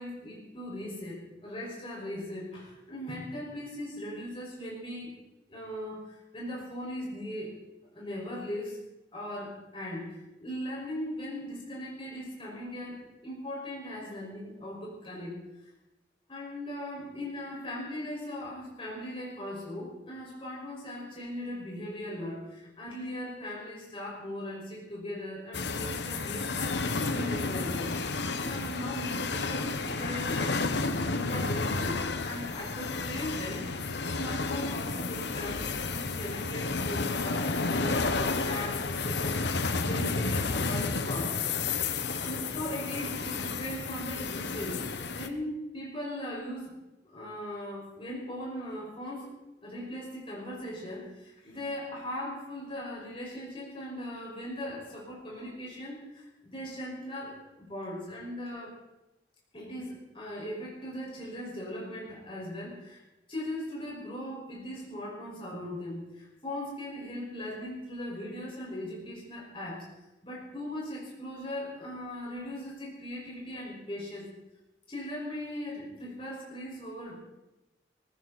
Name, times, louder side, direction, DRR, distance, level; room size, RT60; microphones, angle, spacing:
voice 1, 0.0-5.1 5.5-7.5 7.9-8.8 9.1-15.4 16.3-26.8 27.1-30.7 31.0-41.5 42.2-46.8 47.0-49.3 49.6-58.8 59.5-63.0 63.3-69.9 70.2-74.3 74.9-77.2, left 1 dB, 30° left, -4 dB, 5.3 m, -39 dB
sound 1, 25.5-45.3, left 3 dB, 65° left, 1.1 m, -31 dB
18.5 x 15.5 x 4.2 m, 0.99 s
head